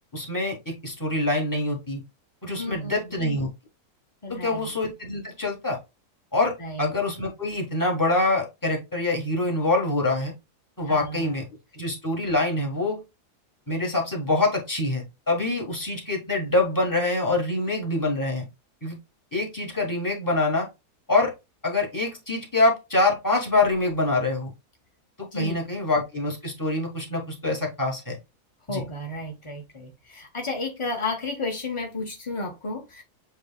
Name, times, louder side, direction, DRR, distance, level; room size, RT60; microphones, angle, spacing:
voice 1, 0.1-2.0 2.4-3.5 4.3-5.8 6.3-10.3 10.8-11.4 11.7-13.0 13.7-18.4 18.8-19.0 19.3-20.7 21.1-21.3 21.6-24.5 25.2-28.2 28.7-28.8, left 2 dB, 15° left, 1.4 m, -25 dB
voice 2, 2.5-3.2 4.2-4.7 6.6-6.9 10.8-11.4 25.3-25.8 28.7-33.0, left 2 dB, 45° left, 0.3 m, -33 dB
7.4 x 2.7 x 2.2 m
omnidirectional pair, 1.7 m